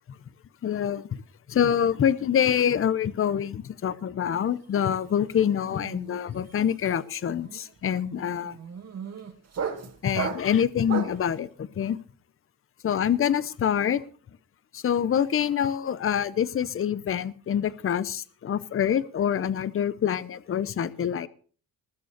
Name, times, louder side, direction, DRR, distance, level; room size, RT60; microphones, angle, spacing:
voice 1, 0.6-1.2 1.5-8.6 10.0-12.0 12.8-14.0 14.7-21.3, left 9 dB, 35° left, 18 dB, 0.8 m, -26 dB
sound 1, 4.5-4.8 5.1-11.3, right 6 dB, 45° right, 2.4 m, -36 dB
20.0 x 6.9 x 6.6 m, 0.43 s
cardioid pair, 135°, 36 cm